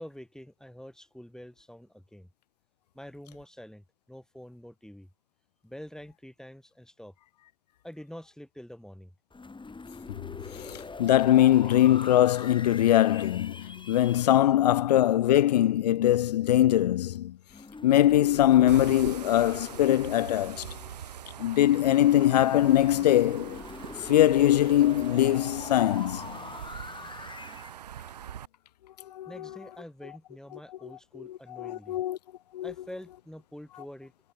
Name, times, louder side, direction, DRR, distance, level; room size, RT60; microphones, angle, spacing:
voice 1, 0.0-2.3 2.9-5.1 5.6-7.1 7.8-9.1 29.3-32.0 32.6-34.1, equal, 5° left, 7.6 m, -46 dB
sound 1, 9.3-14.4 17.5-21.3 22.0-27.7, left 3 dB, 25° left, 2.4 m, -43 dB
voice 2, 10.6-17.4 17.8-20.7 21.4-23.6 24.0-26.4 29.1-29.5 31.2-31.3 31.6-32.2 32.5-32.7, left 13 dB, 80° left, 0.6 m, -22 dB
sound 2, 18.7-28.5, right 10 dB, 80° right, 5.4 m, -43 dB
figure-of-eight pair, 40°, 20 cm